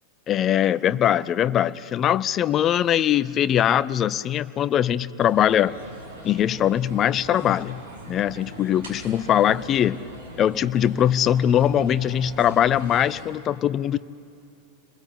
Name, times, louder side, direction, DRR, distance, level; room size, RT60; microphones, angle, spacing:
voice 1, 0.3-5.7 6.2-7.8 8.1-10.0 10.4-14.0, left 10 dB, 30° left, 18 dB, 0.6 m, -21 dB
sound 1, 5.2-13.3, right 1 dB, 60° right, 5.7 m, -41 dB
29.0 x 21.5 x 8.4 m, 2.6 s
figure-of-eight pair, 90°, 0 cm